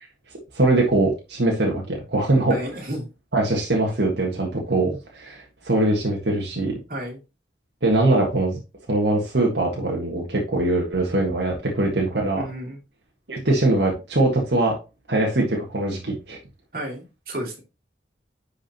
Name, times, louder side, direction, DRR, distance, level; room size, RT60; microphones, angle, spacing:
voice 1, 0.5-2.6 3.3-6.7 7.8-8.6 8.9-12.4 13.3-14.7 15.1-16.4, right 2 dB, 75° right, -1 dB, 1.8 m, -22 dB
voice 2, 2.5-3.1 6.9-7.2 12.3-12.8 16.7-17.6, right 1 dB, 55° right, 0 dB, 2.7 m, -32 dB
11.0 x 5.0 x 3.0 m, 0.29 s
head